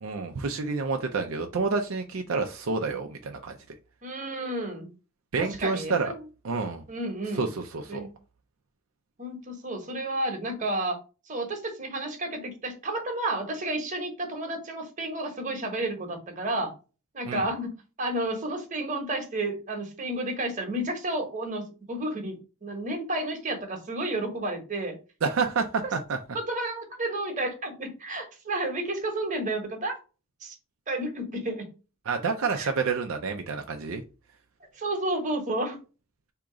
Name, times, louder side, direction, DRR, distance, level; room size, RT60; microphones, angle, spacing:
voice 1, 0.0-3.6 5.3-6.1 6.4-6.8 7.3-8.1 17.3-17.5 25.2-26.2 32.1-34.0, right 4 dB, 70° right, 4 dB, 0.5 m, -29 dB
voice 2, 4.0-4.9 5.4-6.1 6.9-7.5 7.9-8.1 9.2-11.0 11.3-16.7 17.1-17.7 18.0-25.0 26.5-29.9 30.4-30.5 30.9-31.7 32.5-32.7 34.7-35.8, right 1 dB, 35° right, 3 dB, 1.1 m, -31 dB
3.6 x 2.9 x 4.8 m, 0.33 s
head